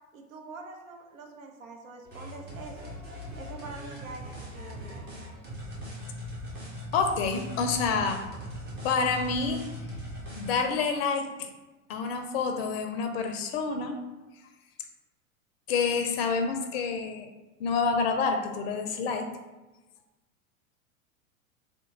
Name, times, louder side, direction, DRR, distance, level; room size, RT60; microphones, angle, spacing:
voice 1, 0.1-2.8 3.4-5.1 5.5-5.6, right 3 dB, 70° right, 3 dB, 0.6 m, -45 dB
sound 1, 2.0-10.5, left 1 dB, 25° right, 0.9 m, -40 dB
voice 2, 6.9-8.2 8.8-9.6 10.3-11.5 11.9-14.0 15.7-17.3 17.6-19.3, left 5 dB, 45° left, 5 dB, 0.5 m, -28 dB
2.9 x 2.2 x 3.6 m, 1.1 s
figure-of-eight pair, 90°, 42 cm